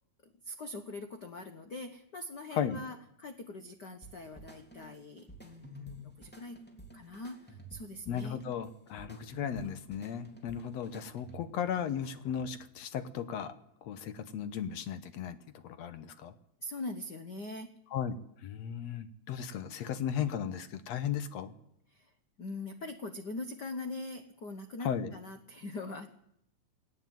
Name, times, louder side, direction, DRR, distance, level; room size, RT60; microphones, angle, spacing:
voice 1, 0.2-6.6 6.9-8.4 16.6-17.7 21.9-22.1 22.4-26.1, left 2 dB, 80° left, 8 dB, 0.9 m, -42 dB
sound 1, 4.0-11.6, left 1 dB, 5° left, 2.5 m, -51 dB
voice 2, 8.1-13.5 13.8-16.3 17.9-18.2 18.4-21.5 24.8-25.1, left 8 dB, 65° left, 12 dB, 2.0 m, -36 dB
18.5 x 17.5 x 9.3 m, 0.76 s
omnidirectional pair, 3.7 m